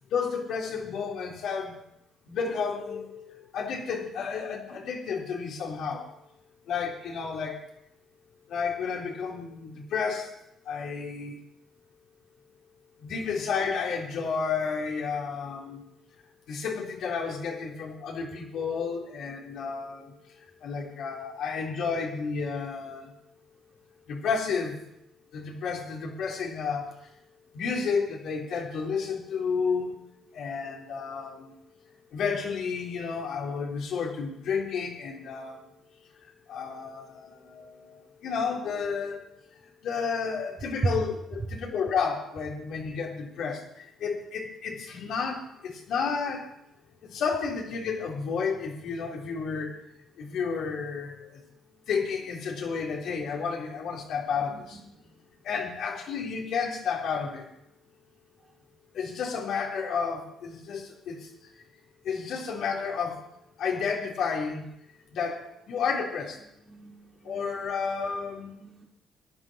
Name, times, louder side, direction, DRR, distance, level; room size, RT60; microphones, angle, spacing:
voice 1, 0.1-1.8 2.3-6.1 6.6-7.6 8.5-10.3 10.6-11.3 13.0-15.9 16.5-23.1 24.1-24.8 25.3-27.1 27.5-30.0 30.3-31.5 32.1-35.7 36.2-39.2 39.6-46.5 47.0-49.7 50.2-51.4 51.9-54.8 55.4-57.5 58.9-61.3 62.0-63.3 63.6-64.6 65.1-66.4 67.2-68.5, left 5 dB, 75° left, -2 dB, 4.1 m, -31 dB
voice 2, 66.6-67.4 68.5-68.9, right 3 dB, 35° right, -3 dB, 2.8 m, -33 dB
17.5 x 11.5 x 4.7 m, 0.80 s
cardioid pair, 85°, 0 cm